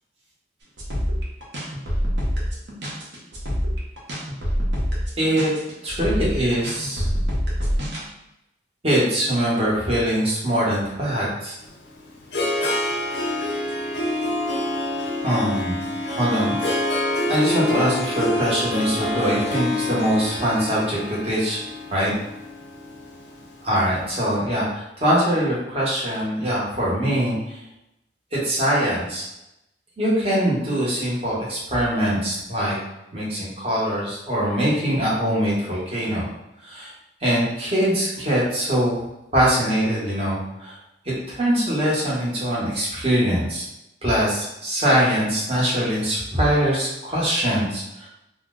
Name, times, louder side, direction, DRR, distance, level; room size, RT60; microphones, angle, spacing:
sound 1, 0.8-8.0, equal, 70° right, 0.9 m, -25 dB
voice 1, 5.2-5.5 5.8-7.0 8.8-11.6 15.2-15.8 16.2-16.6 17.3-21.6 21.9-22.1 23.6-27.6 28.3-29.2 30.0-32.8 33.1-36.2 36.6-36.9 37.2-39.0 39.3-40.7 41.0-43.6 44.0-48.1, equal, 35° right, -6 dB, 1.0 m, -22 dB
Harp, 11.6-23.8, left 1 dB, 70° left, 0.6 m, -27 dB
2.8 x 2.0 x 3.7 m, 0.90 s
head